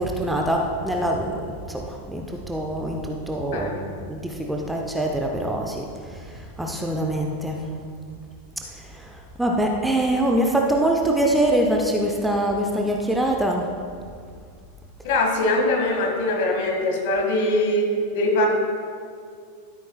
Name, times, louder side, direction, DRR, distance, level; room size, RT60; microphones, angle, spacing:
voice 1, 0.0-7.7 8.7-13.7, right 1 dB, 5° right, 1 dB, 0.7 m, -24 dB
voice 2, 15.0-18.5, left 1 dB, 50° left, 1 dB, 1.8 m, -22 dB
13.0 x 8.5 x 2.3 m, 2.2 s
figure-of-eight pair, 90°, 0 cm